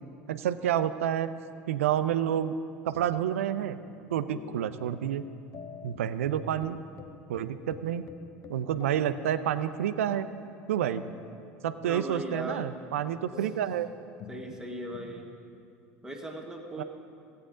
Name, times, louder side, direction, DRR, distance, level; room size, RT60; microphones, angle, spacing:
voice 1, 0.3-1.3 1.7-2.5 2.9-3.8 4.1-5.2 5.8-6.8 7.3-8.0 8.5-10.3 10.7-11.0 11.6-13.9 16.8-16.9, right 10 dB, 80° right, 12 dB, 0.4 m, -29 dB
sound 1, 2.9-15.2, left 6 dB, 45° left, 0.7 m, -48 dB
voice 2, 11.9-12.7 14.3-15.3 16.0-16.8, right 1 dB, 10° right, 0 dB, 1.4 m, -38 dB
15.5 x 8.4 x 3.7 m, 2.3 s
hypercardioid pair, 80°, 7 cm